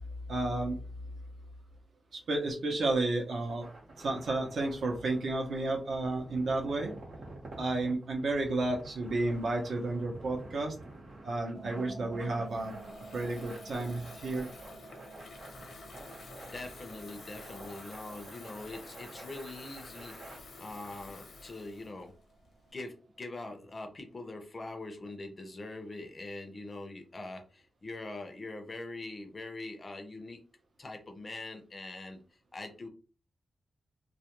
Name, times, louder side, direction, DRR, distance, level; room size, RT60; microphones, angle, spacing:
voice 1, 0.3-0.8 2.1-3.7 4.0-6.9 7.6-10.7 11.2-12.7 13.1-14.5, right 2 dB, 65° right, 1 dB, 0.6 m, -32 dB
sound 1, 3.4-20.4, right 2 dB, 90° right, 1.0 m, -50 dB
sound 2, 11.5-23.3, right 2 dB, 25° right, 0.4 m, -51 dB
Water tap faucet / Fill (with liquid), 12.5-22.7, left 3 dB, 80° left, 0.6 m, -51 dB
voice 2, 16.5-22.1 22.7-30.4 30.8-32.2 32.5-32.9, left 2 dB, 30° left, 5 dB, 0.5 m, -43 dB
2.3 x 2.1 x 2.9 m, 0.35 s
wide cardioid pair, 165°, 0 cm